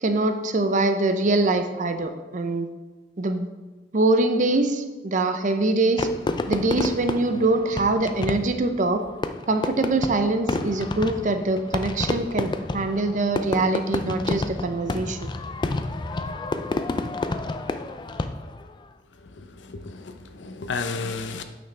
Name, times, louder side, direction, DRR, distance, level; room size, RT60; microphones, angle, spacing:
voice 1, 0.0-2.7 3.2-3.5 3.9-6.1 6.5-9.0 9.5-15.3, right 2 dB, 45° right, 8 dB, 0.6 m, -23 dB
Fireworks, 6.0-18.7, left 2 dB, 25° left, 0.4 m, -29 dB
voice 2, 19.2-21.4, left 4 dB, 85° left, 7 dB, 0.7 m, -33 dB
8.8 x 6.0 x 3.3 m, 1.2 s
head